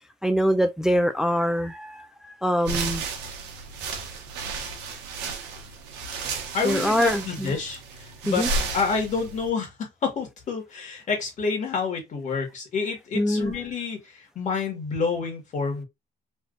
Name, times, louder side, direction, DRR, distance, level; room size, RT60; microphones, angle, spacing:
voice 1, 0.2-2.1 2.4-3.0 6.6-7.5 8.3-8.5 13.1-13.5, equal, 5° right, 0.3 m, -23 dB
sound 1, 2.6-9.5, right 4 dB, 90° right, 0.9 m, -33 dB
voice 2, 6.5-8.4 8.7-9.7 10.0-15.8, left 5 dB, 45° left, 1.6 m, -28 dB
3.4 x 2.7 x 2.5 m
cardioid pair, 110°, 17 cm